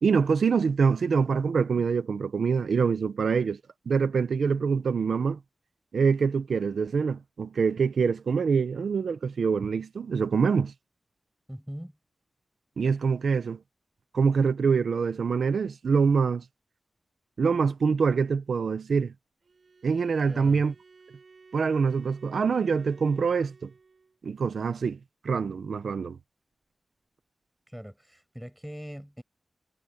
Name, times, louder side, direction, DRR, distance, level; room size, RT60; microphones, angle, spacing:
voice 1, 0.0-3.6 3.9-5.4 5.9-10.7 12.8-13.6 14.1-16.4 17.4-19.1 19.8-20.7 21.5-23.7 24.2-25.0 25.2-26.2, right 5 dB, 90° right, 1.0 m, -25 dB
voice 2, 11.5-12.0 20.3-20.6 27.7-29.2, equal, 5° right, 7.6 m, -41 dB
Bowed string instrument, 19.4-24.2, right 4 dB, 70° right, 6.3 m, -55 dB
cardioid pair, 60°, 0 cm